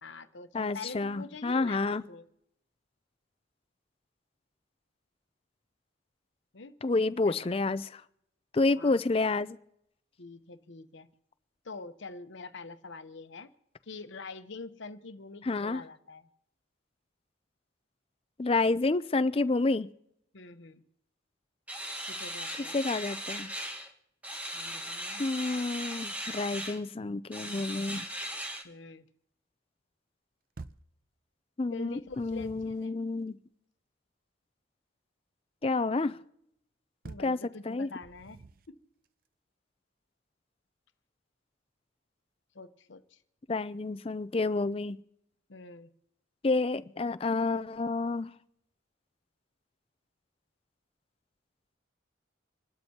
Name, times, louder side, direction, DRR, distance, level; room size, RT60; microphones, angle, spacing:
voice 1, 0.0-2.3 6.5-6.8 7.3-7.4 8.7-9.0 10.2-11.1 11.6-13.5 13.8-16.3 20.3-20.8 22.0-22.8 24.5-25.2 28.6-29.0 31.7-32.9 37.0-38.8 42.5-43.2 45.5-45.9, left 3 dB, 70° left, 0.9 m, -45 dB
voice 2, 0.5-2.0 6.8-8.0 8.5-9.6 15.4-15.8 18.4-19.9 22.7-23.5 25.2-28.1 31.6-33.4 35.6-36.2 37.2-37.4 37.7-37.9 43.5-45.0 46.4-48.3, left 3 dB, 30° left, 0.4 m, -29 dB
sound 1, 21.7-23.9 24.2-26.8 27.3-28.6, equal, 10° right, 1.4 m, -38 dB
sound 2, 30.6-31.0 31.9-32.9 37.0-37.4 38.0-38.8, right 3 dB, 45° right, 0.5 m, -48 dB
27.5 x 12.5 x 2.8 m
head